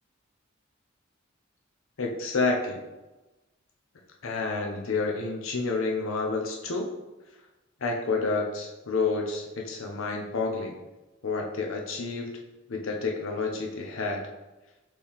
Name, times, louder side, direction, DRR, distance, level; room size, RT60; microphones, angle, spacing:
voice 1, 2.0-2.8 4.2-6.9 7.8-10.7 11.2-12.4 12.7-14.2, left 3 dB, 85° left, 1 dB, 0.6 m, -29 dB
4.4 x 3.1 x 3.5 m, 1.1 s
head